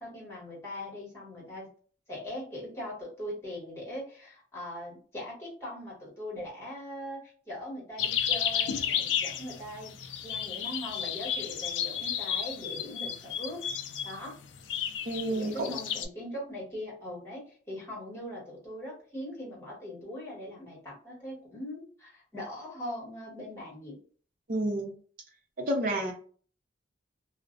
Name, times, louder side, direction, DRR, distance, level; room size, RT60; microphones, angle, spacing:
voice 1, 0.0-1.7 2.1-7.2 7.5-9.9 10.2-14.4 15.3-24.0, left 1 dB, 15° left, -4 dB, 1.2 m, -41 dB
sound 1, 8.0-16.1, left 8 dB, 85° left, 0.3 m, -32 dB
voice 2, 15.0-15.8 24.5-24.9 25.6-26.1, right 1 dB, 50° right, 2 dB, 0.6 m, -30 dB
2.4 x 2.0 x 2.4 m, 0.43 s
head